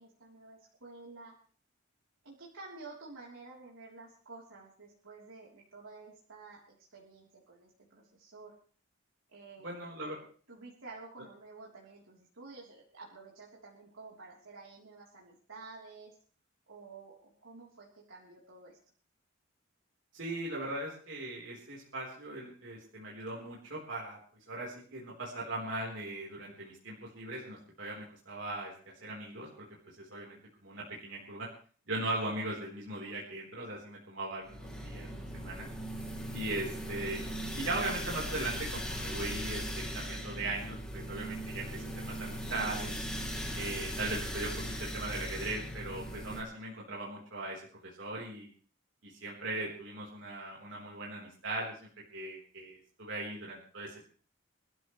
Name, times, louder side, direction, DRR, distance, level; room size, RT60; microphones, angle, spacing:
voice 1, 0.0-1.3 2.2-8.5 9.3-9.9 10.5-16.2 16.7-18.8, right 3 dB, 80° right, -4 dB, 3.6 m, -51 dB
voice 2, 9.6-10.2 20.1-24.2 24.5-28.7 29.0-31.5 31.9-35.7 36.3-37.3 37.5-42.9 43.5-44.5 44.8-48.5 49.0-51.8 52.1-54.1, right 2 dB, 60° right, -3 dB, 4.1 m, -39 dB
sound 1, 34.5-46.4, equal, 5° left, 2.8 m, -39 dB
27.5 x 12.5 x 3.3 m, 0.43 s
head